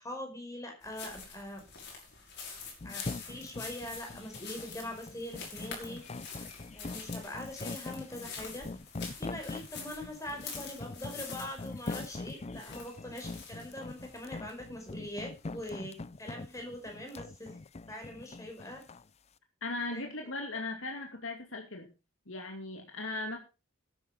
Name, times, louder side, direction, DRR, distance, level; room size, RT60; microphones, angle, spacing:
voice 1, 0.0-1.6 2.8-6.0 6.7-8.7 9.2-17.5 17.9-18.8 19.9-20.0, left 1 dB, 15° left, 3 dB, 5.1 m, -42 dB
sound 1, 0.8-15.7, left 5 dB, 55° left, 6.0 m, -46 dB
sound 2, 2.8-19.1, left 3 dB, 30° left, 0.5 m, -43 dB
voice 2, 19.6-21.9 22.3-23.4, left 2 dB, 75° left, 2 dB, 2.6 m, -38 dB
12.5 x 9.9 x 5.4 m, 0.31 s
head